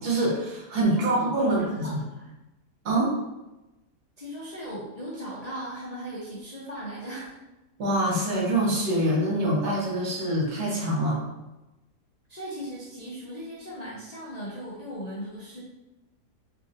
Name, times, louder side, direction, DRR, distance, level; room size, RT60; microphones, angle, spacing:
voice 1, 0.0-2.0 2.8-3.1 7.8-11.2, right 1 dB, 65° right, -4 dB, 1.6 m, -25 dB
voice 2, 0.9-2.3 4.2-7.4 12.3-15.6, equal, 45° left, -7 dB, 0.5 m, -38 dB
3.7 x 3.4 x 2.6 m, 1.0 s
omnidirectional pair, 1.8 m